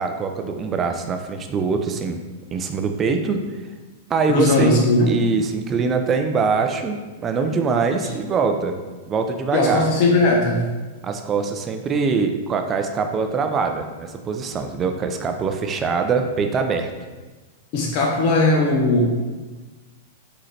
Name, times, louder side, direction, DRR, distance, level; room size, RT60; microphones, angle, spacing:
voice 1, 0.0-2.2 2.5-3.4 4.1-4.8 5.1-8.8 9.1-9.9 11.0-16.9, right 5 dB, 25° right, 5 dB, 0.4 m, -23 dB
voice 2, 4.3-5.1 9.5-10.7 17.7-19.2, left 2 dB, 50° left, -1 dB, 0.7 m, -18 dB
3.9 x 2.8 x 3.2 m, 1.2 s
hypercardioid pair, 115°, 0 cm